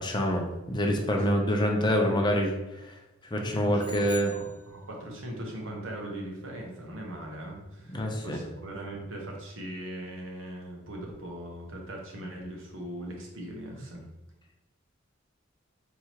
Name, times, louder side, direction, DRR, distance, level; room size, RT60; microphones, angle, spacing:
voice 1, 0.0-2.6 3.3-4.3 7.9-8.4, equal, 25° left, 1 dB, 0.6 m, -26 dB
voice 2, 1.3-1.6 2.0-2.1 3.4-14.1, right 1 dB, 75° right, 0 dB, 1.1 m, -40 dB
sound 1, 3.8-5.2, left 4 dB, 5° right, 1.3 m, -46 dB
3.7 x 3.0 x 4.5 m, 0.99 s
head